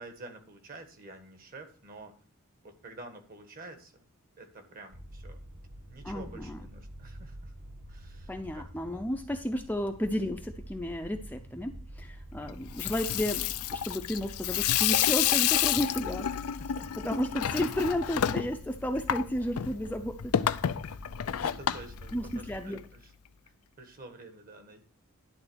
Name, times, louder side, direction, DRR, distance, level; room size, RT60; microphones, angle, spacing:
voice 1, 0.0-2.2 2.6-4.0 4.4-5.4 5.9-7.5 7.9-8.6 8.9-9.0 16.2-17.1 20.9-21.0 21.4-23.1 23.8-24.8, right 2 dB, 40° right, 6 dB, 1.5 m, -48 dB
sound 1, 4.9-22.6, right 1 dB, 90° right, 5.2 m, -48 dB
voice 2, 6.0-6.6 8.3-16.3 17.0-20.3 22.1-22.8, left 1 dB, 10° left, 4 dB, 0.6 m, -33 dB
Water tap faucet / Sink (filling or washing), 12.6-22.8, left 10 dB, 75° left, 0.5 m, -30 dB
11.0 x 3.9 x 6.2 m, 0.41 s
head